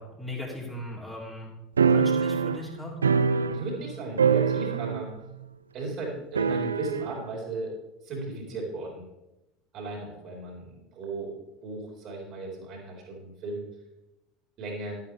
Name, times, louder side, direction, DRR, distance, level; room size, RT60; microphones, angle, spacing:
voice 1, 0.0-1.5 1.9-2.9, left 1 dB, 5° left, -4 dB, 3.1 m, -38 dB
sound 1, 1.8-3.9 4.2-5.2 5.4-5.5 6.4-7.2, right 6 dB, 75° right, 0.3 m, -24 dB
voice 2, 3.1-5.1 5.7-7.7 8.0-9.0 9.7-13.7 14.6-15.0, right 2 dB, 45° right, -1 dB, 4.2 m, -36 dB
12.5 x 11.5 x 3.5 m, 0.96 s
figure-of-eight pair, 70°, 0 cm